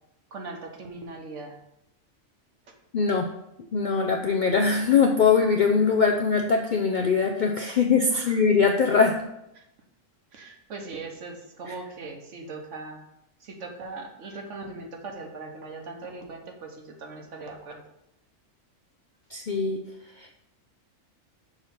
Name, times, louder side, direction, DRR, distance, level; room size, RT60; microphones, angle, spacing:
voice 1, 0.3-1.6 8.1-8.4 9.6-9.7 10.3-13.0 13.4-17.8, right 3 dB, 70° right, 2 dB, 1.3 m, -40 dB
voice 2, 2.9-3.3 3.7-9.2 11.7-11.8 19.3-19.8 20.2-20.4, left 5 dB, 60° left, 2 dB, 0.5 m, -22 dB
6.5 x 3.2 x 5.6 m, 0.82 s
omnidirectional pair, 1.3 m